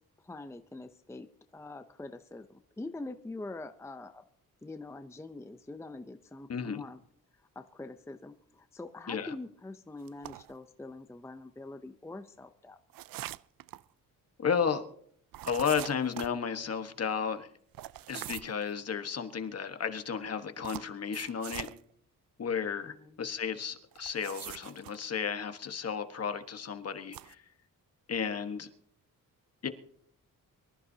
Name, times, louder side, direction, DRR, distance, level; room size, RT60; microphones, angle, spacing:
voice 1, 0.2-1.3 1.5-4.2 4.6-7.0 7.6-12.8 22.8-23.2, left 2 dB, 10° left, 8 dB, 0.6 m, -44 dB
voice 2, 6.5-6.8 9.1-9.3 14.4-14.8 15.5-17.5 18.1-21.7 22.4-27.4 28.1-28.7 29.6-29.7, left 6 dB, 45° left, 8 dB, 1.3 m, -33 dB
sound 1, 10.1-10.6 12.9-13.8 15.3-16.4 17.7-18.6 20.6-21.8 23.9-25.0 27.0-27.3, right 15 dB, 85° right, 0.5 m, -43 dB
24.0 x 14.0 x 2.8 m, 0.65 s
wide cardioid pair, 135°, 33 cm